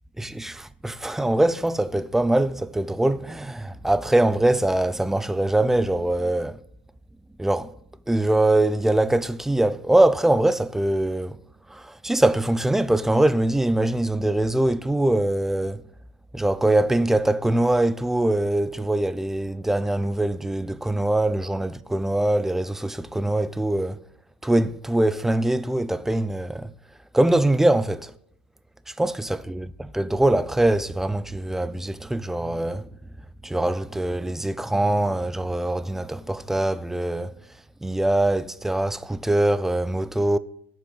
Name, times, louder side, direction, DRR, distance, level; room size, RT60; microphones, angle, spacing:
voice 1, 0.2-6.6 7.4-7.7 8.1-11.4 11.7-15.8 16.3-24.0 24.4-26.7 27.1-28.1 29.0-32.9 33.4-37.3 37.8-40.4, right 1 dB, 5° right, 0.4 m, -23 dB
7.6 x 4.6 x 6.6 m
hypercardioid pair, 100°, 7 cm